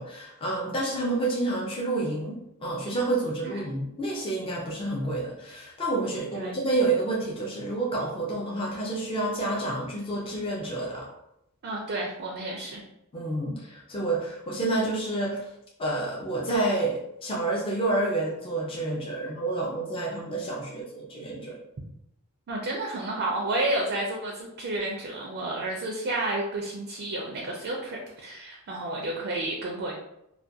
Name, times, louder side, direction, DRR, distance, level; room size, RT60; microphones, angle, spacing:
voice 1, 0.0-11.1 13.1-15.5 15.8-21.6, right 2 dB, 25° left, -4 dB, 0.4 m, -29 dB
voice 2, 11.6-12.8 22.5-29.9, right 2 dB, 45° right, -1 dB, 0.4 m, -31 dB
2.3 x 2.2 x 2.6 m, 0.83 s
head